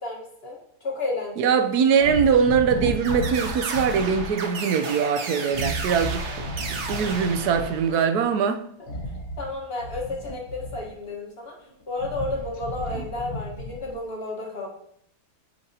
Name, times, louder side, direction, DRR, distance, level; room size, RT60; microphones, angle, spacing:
voice 1, 0.0-1.5 9.4-11.5 11.9-14.7, left 2 dB, 40° left, 1.4 m, -32 dB
voice 2, 1.4-6.3 6.7-8.6, right 6 dB, 75° right, 1.2 m, -22 dB
sound 1, 2.0-4.3 5.5-7.8 8.8-11.1 11.7-14.1, equal, 75° left, 1.6 m, -33 dB
sound 2, 3.0-8.2, right 4 dB, 50° right, 1.0 m, -34 dB
8.6 x 4.8 x 2.8 m
omnidirectional pair, 1.7 m